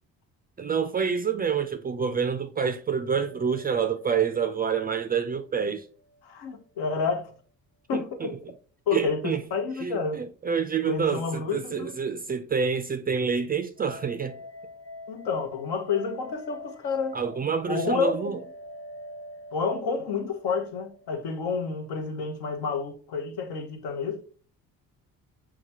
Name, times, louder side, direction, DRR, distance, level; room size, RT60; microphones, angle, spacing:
voice 1, 0.6-5.9 7.9-8.4 8.9-9.4 9.8-14.3 17.1-18.4, right 6 dB, 25° right, 0.4 m, -27 dB
sound 1, 3.0-6.2 6.5-6.6 13.8-21.7, left 1 dB, 30° left, 1.0 m, -46 dB
voice 2, 6.2-7.3 7.9-8.3 8.9-10.2 10.9-11.9 15.1-17.2 17.7-18.2 19.5-24.2, left 5 dB, 65° left, 0.8 m, -29 dB
5.7 x 2.3 x 2.7 m
hypercardioid pair, 50°, 42 cm